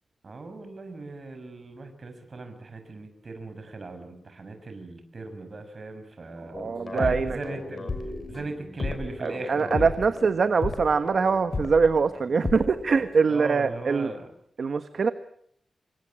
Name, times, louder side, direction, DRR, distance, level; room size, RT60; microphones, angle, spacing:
voice 1, 0.2-6.6 6.9-7.9 8.3-9.9 13.3-14.3, right 3 dB, 45° right, 8 dB, 6.3 m, -38 dB
voice 2, 6.4-7.4 9.2-14.1 14.6-15.1, right 5 dB, 60° right, 10 dB, 1.3 m, -23 dB
sound 1, 6.5-13.2, left 3 dB, 40° left, 6.3 m, -34 dB
28.0 x 25.0 x 7.7 m, 0.67 s
wide cardioid pair, 140°, 0 cm